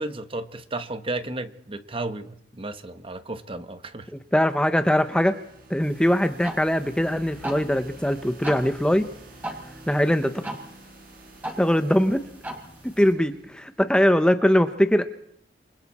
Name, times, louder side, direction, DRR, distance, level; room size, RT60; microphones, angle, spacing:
voice 1, 0.0-4.1, right 2 dB, 30° right, 10 dB, 1.2 m, -33 dB
sound 1, 4.1-14.0, right 1 dB, 55° right, 4.8 m, -50 dB
voice 2, 4.3-5.4 5.7-9.1 9.9-10.4 11.6-12.2 13.0-15.0, equal, 5° left, 8 dB, 0.8 m, -21 dB
sound 2, 5.8-13.1, right 1 dB, 10° right, 4.4 m, -40 dB
28.0 x 25.5 x 4.3 m, 0.71 s
head